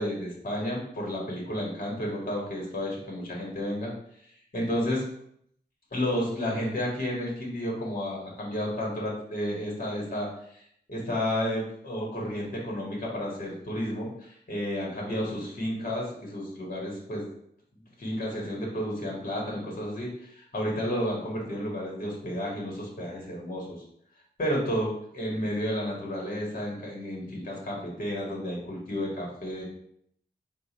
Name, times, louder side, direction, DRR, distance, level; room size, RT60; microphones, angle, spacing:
voice 1, 0.0-3.9 4.2-5.0 5.9-10.6 10.9-17.2 18.0-23.8 24.4-29.6, equal, 50° left, -3 dB, 1.7 m, -32 dB
4.5 x 2.5 x 4.2 m, 0.69 s
cardioid pair, 50°, 18 cm